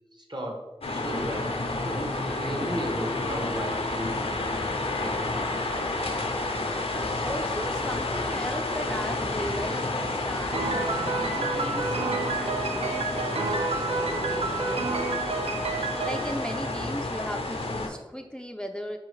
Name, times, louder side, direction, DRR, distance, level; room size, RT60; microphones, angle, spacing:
voice 1, 0.1-4.7 5.0-5.2, equal, 50° right, 0 dB, 0.9 m, -35 dB
sound 1, 0.8-17.9, left 2 dB, 85° left, 0.5 m, -30 dB
voice 2, 7.2-19.0, equal, 10° left, 4 dB, 0.3 m, -37 dB
Piano, 10.5-17.4, right 4 dB, 85° right, 0.4 m, -30 dB
4.2 x 3.6 x 3.1 m, 1.1 s
wide cardioid pair, 45°, 10 cm